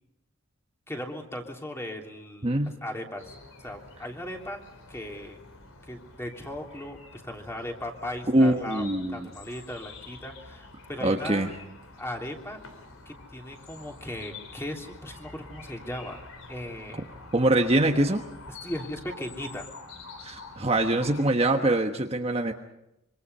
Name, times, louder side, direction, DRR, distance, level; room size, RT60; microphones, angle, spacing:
voice 1, 0.9-3.3 3.6-4.6 4.9-5.4 5.8-11.5 12.0-12.6 13.0-16.2 16.5-17.2 18.5-19.7, left 1 dB, 10° left, 2 dB, 3.2 m, -37 dB
voice 2, 2.4-2.8 8.3-9.3 11.0-11.5 17.3-18.2 20.2-22.5, right 1 dB, 30° right, 3 dB, 1.3 m, -23 dB
sound 1, 3.2-21.3, left 3 dB, 65° left, 4.1 m, -47 dB
26.0 x 25.0 x 5.6 m, 0.87 s
head